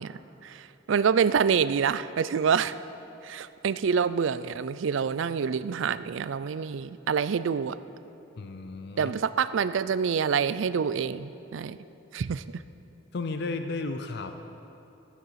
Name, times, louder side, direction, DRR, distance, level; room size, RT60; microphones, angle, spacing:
voice 1, 0.0-2.7 3.2-7.8 9.0-11.8 12.1-12.4, right 6 dB, 65° right, 15 dB, 0.4 m, -27 dB
voice 2, 8.4-9.1 13.1-14.3, left 3 dB, 55° left, 7 dB, 0.5 m, -33 dB
14.0 x 9.5 x 5.7 m, 2.9 s
head